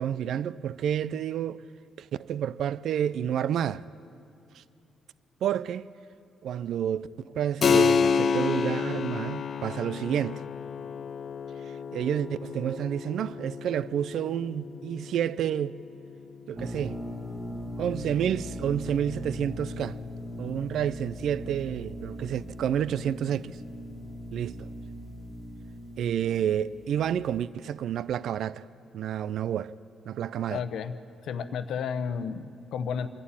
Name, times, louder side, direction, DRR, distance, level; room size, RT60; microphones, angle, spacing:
voice 1, 0.0-1.6 2.0-3.8 4.5-4.6 5.4-5.9 6.4-10.4 11.6-15.8 16.5-17.0 17.8-20.0 20.4-23.6 24.3-24.7 26.0-28.7 28.9-29.7 30.1-30.6, right 9 dB, 70° right, 0.4 m, -29 dB
Keyboard (musical), 7.6-17.8, left 6 dB, 50° left, 0.5 m, -30 dB
sound 1, 16.5-27.4, left 1 dB, 15° right, 2.0 m, -39 dB
voice 2, 30.5-30.9 31.2-33.1, left 6 dB, 75° left, 0.9 m, -32 dB
27.0 x 11.5 x 8.8 m
cardioid pair, 90°, 0 cm